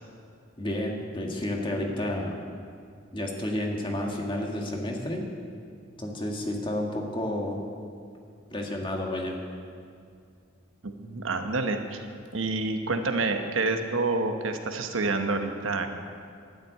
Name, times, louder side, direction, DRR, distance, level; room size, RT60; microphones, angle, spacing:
voice 1, 0.6-2.3 3.1-5.3 6.0-7.6 8.5-9.4, left 1 dB, 25° left, 1 dB, 1.6 m, -31 dB
voice 2, 10.8-12.0 12.3-15.9, right 3 dB, 85° right, 6 dB, 1.1 m, -28 dB
12.0 x 7.6 x 9.3 m, 2.3 s
head